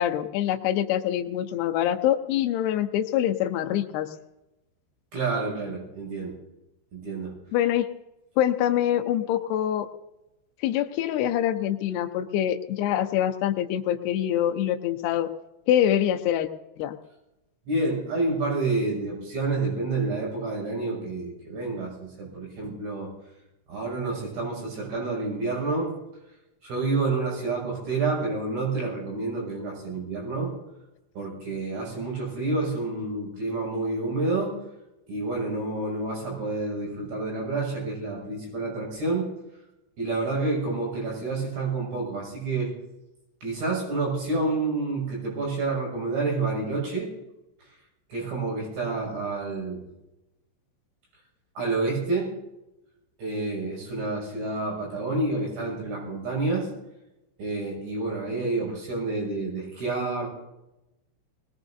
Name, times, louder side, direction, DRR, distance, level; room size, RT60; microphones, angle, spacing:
voice 1, 0.0-4.1 7.5-7.9 8.4-9.9 10.6-15.3 15.7-16.5 16.8-17.0, left 11 dB, 85° left, 5 dB, 2.3 m, -25 dB
voice 2, 5.1-6.4 6.9-7.4 17.7-23.1 23.7-26.0 26.6-30.5 31.1-34.5 35.1-39.3 40.0-42.7 43.4-47.1 48.1-49.8 51.6-52.3 53.2-56.7 57.4-60.3, right 3 dB, 60° right, -2 dB, 8.4 m, -29 dB
21.5 x 19.5 x 2.7 m, 0.94 s
omnidirectional pair, 5.7 m